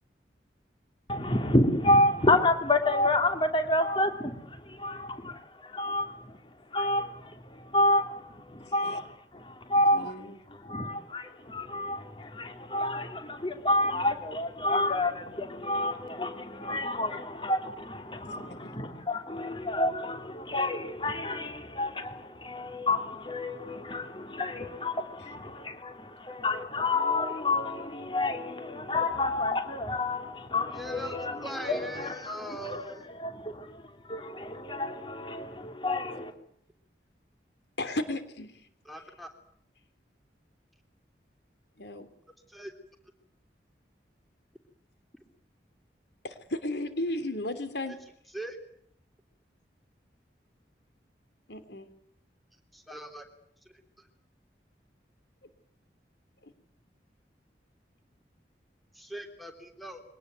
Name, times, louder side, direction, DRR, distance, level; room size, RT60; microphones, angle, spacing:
voice 1, 1.1-6.4 6.7-10.1 10.5-32.8 33.2-36.3, left 1 dB, 25° left, 2.9 m, -29 dB
voice 2, 9.9-10.4 18.4-18.8 37.8-38.5 41.8-42.1 46.2-48.0 51.5-51.9 56.4-56.5, left 1 dB, 75° left, 3.1 m, -34 dB
voice 3, 30.8-33.0 38.8-39.3 42.5-42.7 48.3-48.6 52.7-53.2 58.9-60.0, right 1 dB, ahead, 3.2 m, -40 dB
23.5 x 18.5 x 9.4 m
head